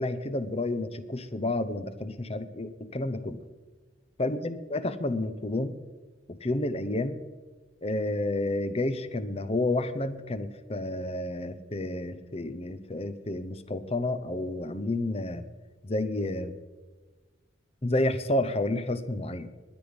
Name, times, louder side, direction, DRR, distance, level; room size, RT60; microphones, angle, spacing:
voice 1, 0.0-3.4 4.2-5.8 6.3-7.2 7.8-15.4 15.8-16.6 17.8-19.5, left 2 dB, 35° left, 12 dB, 0.8 m, -30 dB
20.0 x 9.7 x 5.2 m, 1.4 s
head